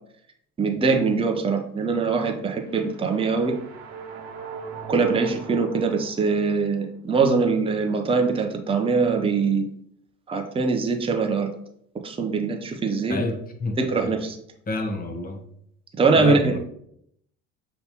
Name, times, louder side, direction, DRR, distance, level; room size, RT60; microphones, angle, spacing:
voice 1, 0.6-3.6 4.9-9.7 10.3-11.5 12.0-13.2 13.8-14.4 16.0-16.6, right 4 dB, 15° right, 4 dB, 0.5 m, -22 dB
sound 1, 2.4-6.7, right 5 dB, 65° right, 0.9 m, -39 dB
voice 2, 13.1-13.8 14.7-15.4 16.2-16.6, left 2 dB, 20° left, 5 dB, 0.7 m, -29 dB
6.6 x 2.2 x 2.8 m, 0.71 s
hypercardioid pair, 65°, 42 cm